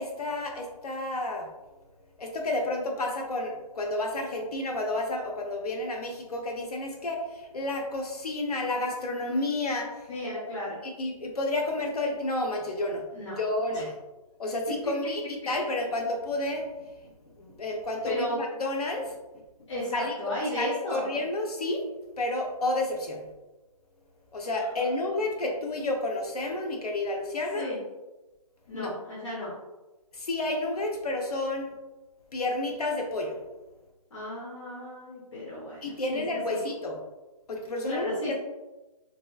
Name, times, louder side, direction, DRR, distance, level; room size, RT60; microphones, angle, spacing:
voice 1, 0.0-1.5 2.2-10.4 10.8-13.0 13.4-13.9 14.4-19.2 19.9-20.1 20.6-21.8 22.2-23.3 24.3-27.7 28.7-28.9 30.1-31.7 32.3-33.4 35.8-37.0 37.5-38.3, left 2 dB, 75° left, 1 dB, 0.8 m, -31 dB
voice 2, 10.1-10.8 13.1-13.4 13.7-13.9 18.0-18.4 19.7-21.0 27.5-27.8 28.7-29.5 34.1-36.6 37.9-38.3, left 1 dB, 50° left, -8 dB, 0.9 m, -34 dB
2.9 x 2.7 x 2.3 m, 1.1 s
hypercardioid pair, 170°, 20 cm